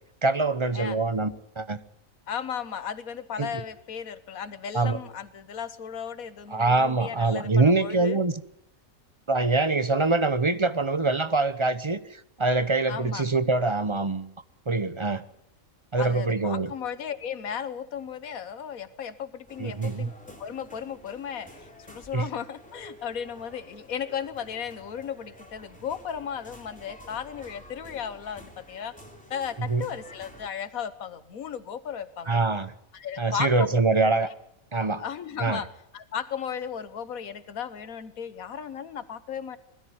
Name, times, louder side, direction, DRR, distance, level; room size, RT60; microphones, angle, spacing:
voice 1, 0.2-1.8 3.4-3.5 4.7-5.0 6.5-8.3 9.3-14.3 14.7-15.2 15.9-16.7 19.6-20.1 22.1-22.3 29.6-29.8 32.3-32.7 33.2-34.3 34.7-35.0 35.4-35.6, right 3 dB, 30° right, 13 dB, 0.6 m, -24 dB
voice 2, 2.3-8.2 12.9-13.2 16.0-20.1 20.4-28.9 29.3-32.4 32.9-33.7 34.2-34.3 35.0-35.7 35.9-39.6, left 8 dB, 90° left, 13 dB, 1.5 m, -35 dB
sound 1, 19.5-30.5, equal, 5° left, 3.0 m, -50 dB
21.0 x 14.0 x 9.5 m, 0.76 s
omnidirectional pair, 1.4 m